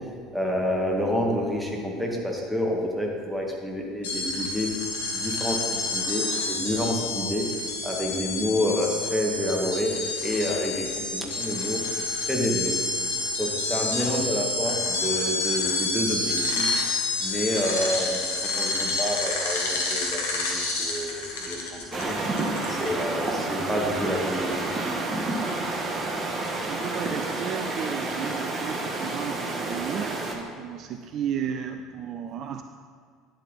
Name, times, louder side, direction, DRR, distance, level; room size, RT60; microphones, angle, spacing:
voice 1, 0.3-4.7 5.1-7.5 7.8-9.9 10.2-11.8 12.3-12.7 13.4-16.7 17.2-22.2 22.7-25.3, equal, 5° right, -1 dB, 1.9 m, -28 dB
sound 1, 4.0-23.2, left 3 dB, 70° left, 1.3 m, -29 dB
sound 2, 21.9-30.4, right 2 dB, 30° right, 1.4 m, -29 dB
voice 2, 26.3-32.6, right 8 dB, 45° right, 7 dB, 0.4 m, -34 dB
10.5 x 7.7 x 4.1 m, 2.1 s
figure-of-eight pair, 65°, 0 cm